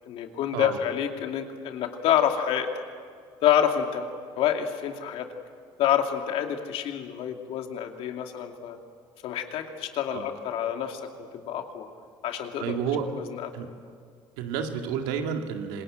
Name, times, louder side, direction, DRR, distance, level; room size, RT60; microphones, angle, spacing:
voice 1, 0.1-2.7 3.4-5.3 5.8-8.8 9.2-11.9 12.2-12.8 13.1-13.5, left 9 dB, 70° left, 4 dB, 2.6 m, -27 dB
voice 2, 12.6-13.1 13.5-13.7 14.4-15.8, right 7 dB, 90° right, 4 dB, 2.3 m, -30 dB
26.5 x 21.0 x 8.9 m, 2.1 s
supercardioid pair, 85°, 10 cm